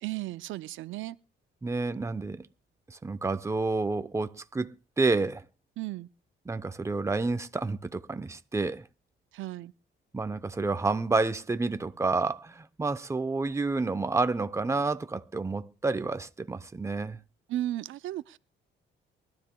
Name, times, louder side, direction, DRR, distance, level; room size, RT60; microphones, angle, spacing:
voice 1, 0.0-1.2 5.8-6.1 9.3-9.7 17.5-18.4, right 14 dB, 80° right, 0.5 m, -35 dB
voice 2, 1.6-2.4 2.9-4.7 5.0-5.4 6.5-8.8 10.1-17.2, right 3 dB, 15° right, 0.7 m, -29 dB
23.5 x 12.5 x 2.2 m
cardioid pair, 90°, 20 cm